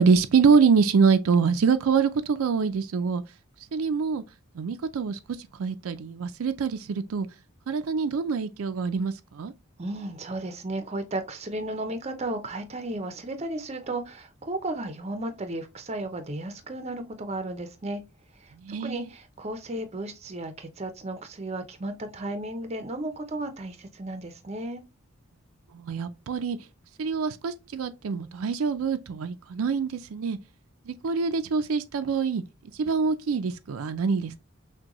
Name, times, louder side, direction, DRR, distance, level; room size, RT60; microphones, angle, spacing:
voice 1, 0.0-3.2 3.7-4.2 4.6-5.2 5.6-7.3 7.7-9.5 18.6-19.1 25.7-26.6 27.0-30.4 30.9-32.4 32.8-34.4, right 5 dB, 80° right, 0.4 m, -25 dB
voice 2, 9.8-18.0 18.4-18.5 18.8-24.8, right 2 dB, 30° right, 0.6 m, -34 dB
6.1 x 2.2 x 2.9 m
head